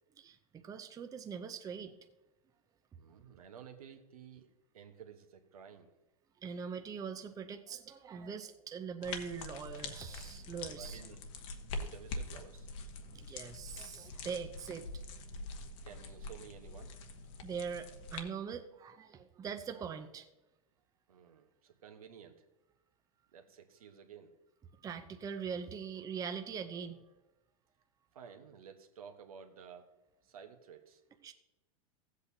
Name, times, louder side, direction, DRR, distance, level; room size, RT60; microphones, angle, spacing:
voice 1, 0.2-1.9 6.4-11.0 13.1-14.9 17.4-20.3 24.8-27.0 31.2-31.3, right 6 dB, 20° right, 7 dB, 0.6 m, -42 dB
voice 2, 2.9-4.5 4.7-5.9 10.7-11.2 11.7-12.7 15.8-17.0 21.1-22.4 23.3-24.4 28.1-29.9 30.2-31.0, right 7 dB, 75° right, 6 dB, 1.2 m, -53 dB
sound 1, 9.0-18.2, left 3 dB, 60° left, 1.3 m, -44 dB
15.0 x 8.1 x 2.8 m, 1.0 s
hypercardioid pair, 105°, 18 cm